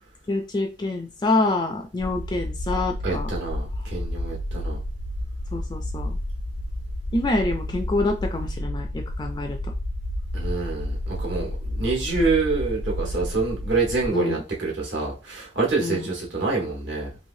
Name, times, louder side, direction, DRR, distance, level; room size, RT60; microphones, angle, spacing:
voice 1, 0.3-3.3 5.5-6.2 7.1-9.6 14.1-14.4 15.8-16.1, left 2 dB, 20° left, 4 dB, 0.3 m, -26 dB
sound 1, 2.0-14.1, left 1 dB, 80° left, 0.5 m, -31 dB
voice 2, 3.0-4.8 10.3-17.1, right 3 dB, 65° right, -2 dB, 1.3 m, -26 dB
3.1 x 2.6 x 2.6 m, 0.31 s
head